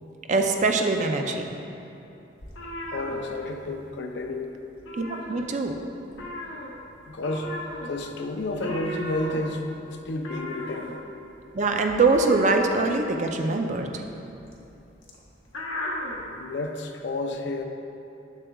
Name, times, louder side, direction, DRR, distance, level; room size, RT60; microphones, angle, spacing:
voice 1, 0.3-1.5 5.0-5.8 11.5-13.9, right 3 dB, 40° right, 4 dB, 0.4 m, -23 dB
sound 1, 2.4-3.9 4.2-4.4 4.7-5.8 6.1-16.2, left 1 dB, 85° left, 0.9 m, -37 dB
voice 2, 2.9-4.5 7.1-7.5 7.9-9.6 10.1-10.9 16.2-17.6, left 2 dB, 65° left, 4 dB, 0.5 m, -31 dB
7.2 x 6.7 x 2.3 m, 2.8 s
head